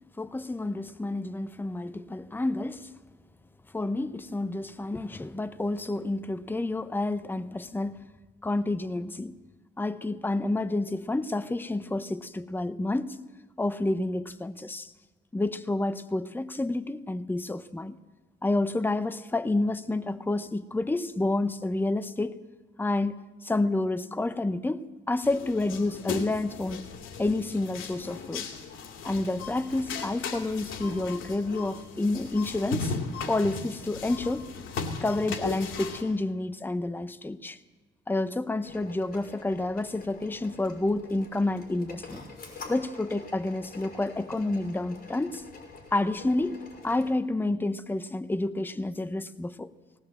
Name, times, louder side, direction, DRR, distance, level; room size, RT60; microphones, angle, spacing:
voice 1, 0.2-2.9 3.7-8.1 8.4-9.4 9.8-13.2 13.6-14.9 15.3-18.0 18.4-22.4 22.8-26.8 27.2-28.5 29.0-32.9 33.3-34.5 35.0-37.6 38.1-42.2 42.7-45.4 45.9-46.6 46.8-49.7, left 2 dB, 10° left, 0.8 m, -29 dB
sound 1, 25.2-36.0, left 5 dB, 90° left, 2.4 m, -37 dB
sound 2, 38.6-47.1, left 4 dB, 50° left, 5.5 m, -47 dB
19.0 x 18.0 x 7.7 m
cardioid pair, 90°, 20 cm